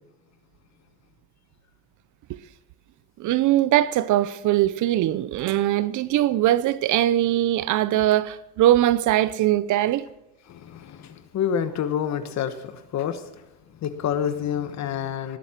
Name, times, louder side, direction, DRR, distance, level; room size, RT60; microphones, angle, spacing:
voice 1, 3.2-10.1, right 13 dB, 55° right, 0.7 m, -21 dB
voice 2, 10.5-13.2 13.8-15.4, left 8 dB, 50° left, 1.2 m, -28 dB
18.5 x 8.2 x 5.9 m
supercardioid pair, 105°, 36 cm